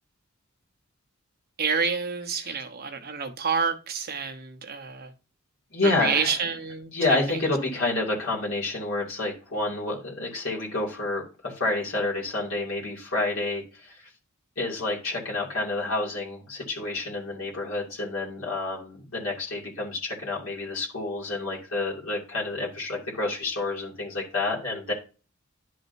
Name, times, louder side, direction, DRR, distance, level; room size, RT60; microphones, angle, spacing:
voice 1, 1.6-5.1 5.8-7.4, right 5 dB, 50° right, 1.0 m, -28 dB
voice 2, 5.7-6.4 6.9-14.0 14.6-24.9, left 2 dB, 70° left, 2.5 m, -29 dB
11.0 x 5.0 x 2.7 m
head